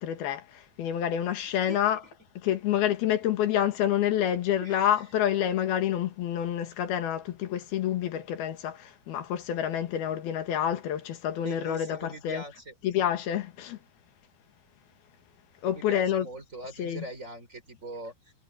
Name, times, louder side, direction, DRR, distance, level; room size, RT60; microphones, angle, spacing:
voice 1, 0.0-2.0 2.4-12.4 12.8-13.8 15.6-16.3 16.8-17.0, left 10 dB, 85° left, 3.6 m, -28 dB
voice 2, 1.4-1.9 4.6-5.0 11.3-12.7 15.7-18.3, right 2 dB, 20° right, 4.8 m, -42 dB
omnidirectional pair, 4.2 m